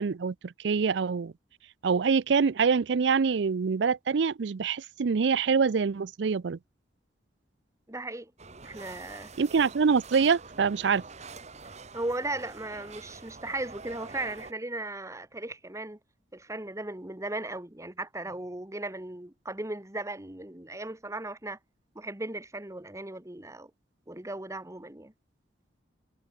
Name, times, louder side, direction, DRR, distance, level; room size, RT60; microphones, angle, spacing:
voice 1, 0.0-1.3 1.8-6.6 9.4-11.0, right 5 dB, 70° right, 0.5 m, -25 dB
voice 2, 7.9-8.3 8.6-9.3 11.9-16.0 16.3-21.6 21.9-23.7 24.1-25.1, right 2 dB, 15° right, 1.3 m, -37 dB
sound 1, 8.4-14.5, right 4 dB, 40° right, 2.2 m, -46 dB
head